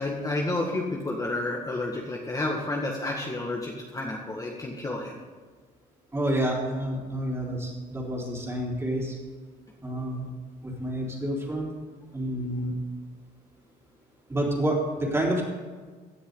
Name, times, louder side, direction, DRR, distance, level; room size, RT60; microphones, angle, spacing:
voice 1, 0.0-5.2, left 2 dB, 20° left, -1 dB, 1.7 m, -30 dB
voice 2, 6.1-9.2 9.8-10.2 10.6-11.7 12.1-12.7 14.3-15.4, right 1 dB, 15° right, -2 dB, 3.9 m, -28 dB
17.0 x 10.0 x 3.9 m, 1.5 s
cardioid pair, 110°, 17 cm